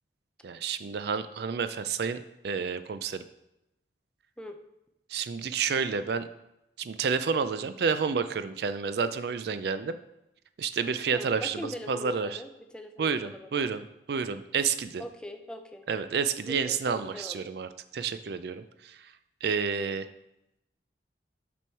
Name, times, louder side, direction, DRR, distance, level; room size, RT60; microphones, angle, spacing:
voice 1, 0.4-2.2 2.4-3.2 5.1-6.2 6.8-10.0 10.6-12.4 13.0-15.0 15.9-19.0 19.4-20.1, right 6 dB, 60° right, 12 dB, 0.4 m, -30 dB
voice 2, 11.1-13.7 15.0-15.8 16.5-17.5 19.8-20.0, left 1 dB, 5° left, 5 dB, 0.5 m, -41 dB
6.2 x 6.0 x 4.5 m, 0.87 s
head